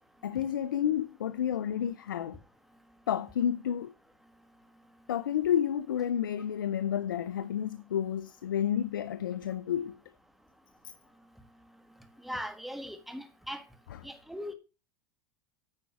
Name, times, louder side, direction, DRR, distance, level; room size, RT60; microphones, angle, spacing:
voice 1, 0.2-2.4 3.1-3.9 5.1-10.0 13.9-14.0, left 9 dB, 90° left, 0.5 m, -30 dB
voice 2, 12.2-13.6 14.0-14.5, equal, ahead, 1.7 m, -39 dB
9.6 x 5.2 x 6.2 m
hypercardioid pair, 95°, 11 cm